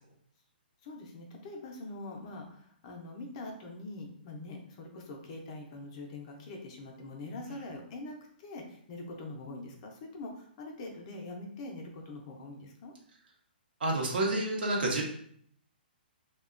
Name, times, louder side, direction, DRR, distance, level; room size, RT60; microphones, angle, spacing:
voice 1, 0.8-12.9, left 2 dB, 35° left, 1 dB, 0.4 m, -43 dB
voice 2, 13.8-15.0, right 2 dB, 70° right, 0 dB, 0.7 m, -29 dB
2.7 x 2.1 x 2.4 m, 0.63 s
hypercardioid pair, 160°, 6 cm